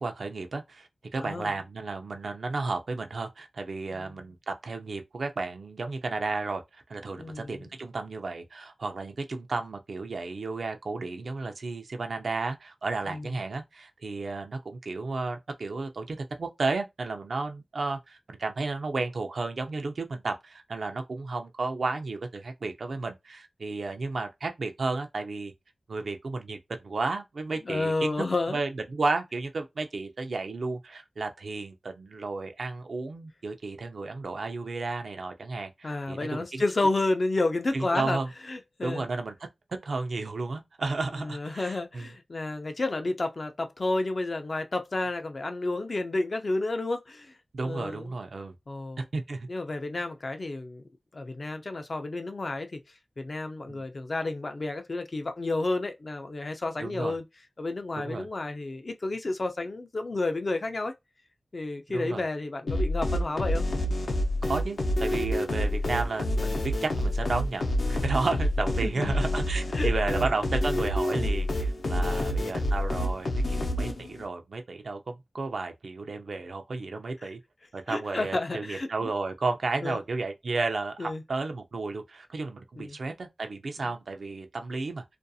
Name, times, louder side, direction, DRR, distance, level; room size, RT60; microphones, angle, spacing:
voice 1, 0.0-25.5 25.9-28.1 28.5-36.6 37.7-38.3 38.8-39.3 39.8-42.1 47.5-48.5 49.0-49.5 53.7-53.8 56.8-57.1 58.0-58.3 61.9-62.2 64.5-77.4 77.7-85.0, right 3 dB, 80° right, 0.5 m, -33 dB
voice 2, 1.2-1.5 3.9-4.2 7.1-7.7 13.1-13.3 27.6-28.6 35.8-38.2 38.5-39.1 41.2-47.3 47.6-48.1 48.7-49.0 49.5-50.8 51.1-52.8 53.2-57.2 57.6-60.9 61.5-63.7 68.8-69.1 69.7-70.3 72.0-72.4 77.9-78.9 79.8-80.0 81.0-81.2 82.8-83.0 83.8-83.9, left 2 dB, 55° left, 0.5 m, -31 dB
sound 1, 62.7-74.3, left 1 dB, 85° left, 0.7 m, -28 dB
2.5 x 2.3 x 2.6 m
wide cardioid pair, 60°, 0 cm